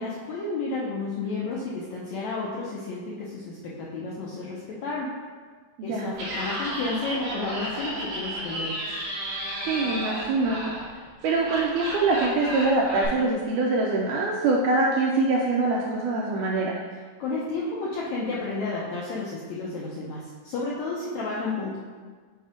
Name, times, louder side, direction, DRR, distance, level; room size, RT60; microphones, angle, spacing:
voice 1, 0.0-5.1 5.8-9.0 17.2-21.8, left 3 dB, 80° left, -5 dB, 1.6 m, -32 dB
Laughter, 6.1-13.1, right 1 dB, 65° right, 2.3 m, -33 dB
voice 2, 9.7-10.6 11.2-16.8, right 3 dB, 80° right, -2 dB, 1.8 m, -24 dB
7.0 x 2.7 x 5.0 m, 1.5 s
omnidirectional pair, 4.0 m